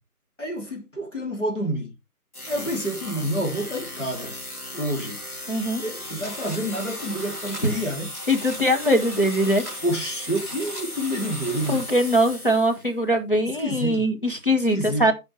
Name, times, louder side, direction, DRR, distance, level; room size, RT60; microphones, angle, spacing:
voice 1, 0.4-1.9 2.5-4.3 4.7-5.2 5.8-8.1 9.8-11.8 13.6-14.1 14.7-15.1, equal, 50° left, 2.9 m, -28 dB
sound 1, 2.3-12.9, left 1 dB, 70° left, 2.6 m, -37 dB
voice 2, 5.5-5.8 7.6-7.8 8.3-9.6 11.7-15.1, equal, 35° left, 1.5 m, -22 dB
sound 2, 6.1-11.8, equal, 10° left, 3.3 m, -41 dB
14.5 x 5.4 x 3.3 m
figure-of-eight pair, 175°, 46 cm